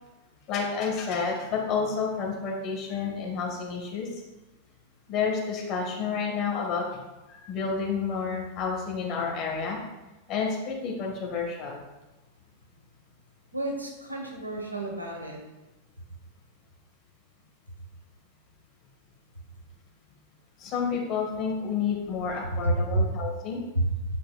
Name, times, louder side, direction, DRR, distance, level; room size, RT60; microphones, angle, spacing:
voice 1, 0.5-4.1 5.1-7.0 7.3-9.8 10.3-11.8 20.6-23.6, left 5 dB, 35° left, -1 dB, 1.7 m, -30 dB
voice 2, 13.5-15.4 22.6-23.1 23.7-24.2, right 1 dB, 85° right, 0 dB, 1.4 m, -29 dB
9.3 x 5.6 x 2.3 m, 1.0 s
figure-of-eight pair, 90°, 0 cm